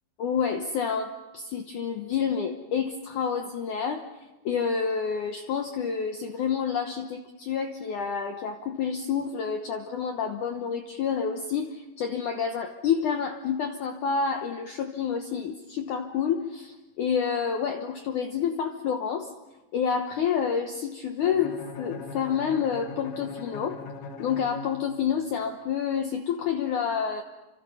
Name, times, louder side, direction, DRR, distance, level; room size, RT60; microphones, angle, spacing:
voice 1, 0.2-4.0 4.5-19.3 19.7-23.8 24.2-27.2, left 7 dB, 75° left, 5 dB, 1.8 m, -28 dB
Bowed string instrument, 21.2-25.3, left 3 dB, 90° left, 4.1 m, -41 dB
29.5 x 26.0 x 5.6 m, 1.1 s
omnidirectional pair, 5.1 m